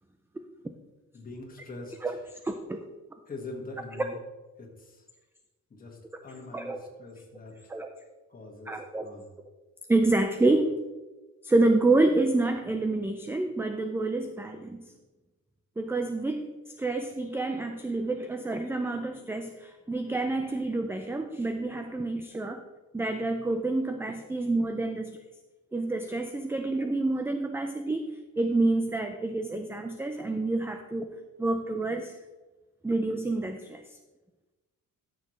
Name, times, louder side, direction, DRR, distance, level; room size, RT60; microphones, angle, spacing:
voice 1, 1.1-2.1 3.3-4.2 4.6-5.0 5.7-7.6 8.3-8.8 9.0-9.3, left 2 dB, 25° left, 0 dB, 1.8 m, -43 dB
voice 2, 2.4-2.8 3.9-4.1 6.5-6.8 7.7-7.9 8.7-9.1 9.9-10.7 11.4-14.9 15.8-16.5 16.8-22.6 22.9-25.2 25.7-28.0 28.4-32.2 32.8-33.8, right 2 dB, 10° right, 6 dB, 0.4 m, -28 dB
13.0 x 6.5 x 3.2 m, 1.2 s
cardioid pair, 145°, 32 cm